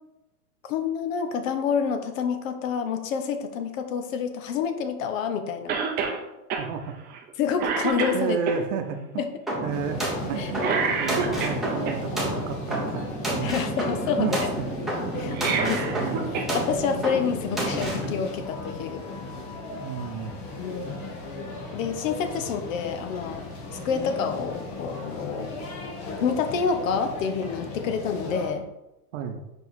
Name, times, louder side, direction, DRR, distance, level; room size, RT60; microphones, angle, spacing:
voice 1, 0.7-5.7 7.4-8.4 10.4-10.5 13.4-14.5 15.2-15.8 16.5-19.0 20.6-21.1 21.7-23.4 23.7-25.5 26.2-28.6, left 6 dB, 55° left, 8 dB, 0.8 m, -28 dB
Cough, 5.7-6.2 6.5-6.7 7.1-7.3 7.6-8.6 10.6-11.9 15.2-16.5 16.8-16.9 18.0-18.1, right 5 dB, 20° right, 0.6 m, -27 dB
voice 2, 6.6-7.2 8.1-9.2 9.6-13.6 13.9-14.4 14.9-15.0 15.2-16.3 19.8-20.3 22.3-22.4 29.1-29.4, right 7 dB, 55° right, 6 dB, 0.9 m, -33 dB
sound 1, 9.5-18.1, right 1 dB, ahead, 0.9 m, -30 dB
sound 2, 9.7-28.5, left 2 dB, 35° left, 1.2 m, -36 dB
4.9 x 4.7 x 4.1 m, 0.94 s
supercardioid pair, 150°, 46 cm